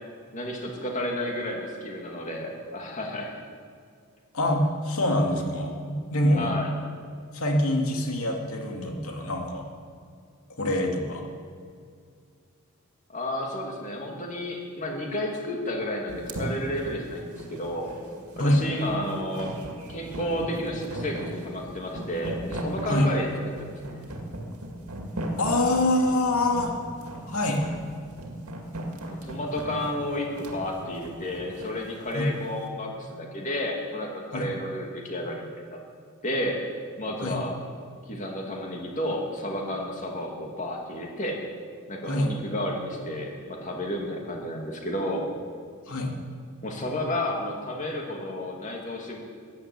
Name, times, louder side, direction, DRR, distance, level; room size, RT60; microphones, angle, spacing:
voice 1, 0.3-3.3 6.3-6.7 13.1-17.9 18.4-19.5 19.9-23.3 23.6-24.0 29.0-35.8 36.2-36.6 37.0-37.6 38.1-41.4 41.9-45.2 46.6-49.2, left 1 dB, 35° left, 0 dB, 2.5 m, -31 dB
voice 2, 4.3-6.5 7.3-9.7 10.6-11.2 18.4-18.6 22.9-23.1 25.4-26.8 27.3-27.6 32.1-32.3 34.3-34.5 37.2-37.4 42.0-42.3 45.9-46.1, left 1 dB, 75° left, 1 dB, 2.5 m, -25 dB
sound 1, 16.1-32.4, right 1 dB, 90° right, 2.1 m, -37 dB
14.5 x 10.5 x 8.1 m, 2.3 s
head